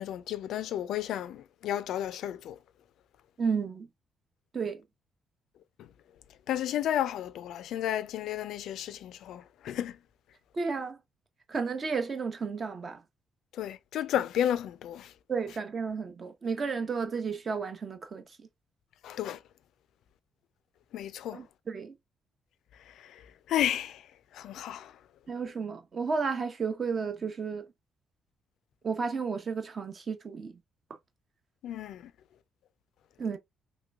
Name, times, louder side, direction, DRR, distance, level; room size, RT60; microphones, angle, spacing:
voice 1, 0.0-2.6 5.8-5.9 6.5-9.9 13.6-15.1 19.0-19.4 20.9-21.4 23.5-24.0 24.3-24.9 31.6-32.1, left 11 dB, 80° left, 0.3 m, -32 dB
voice 2, 3.4-3.9 4.5-4.8 10.5-11.0 11.5-13.0 15.3-18.2 21.3-21.9 25.3-27.7 28.8-30.6 33.2-33.4, right 5 dB, 40° right, 0.8 m, -32 dB
3.2 x 2.9 x 2.3 m
cardioid pair, 90°, 0 cm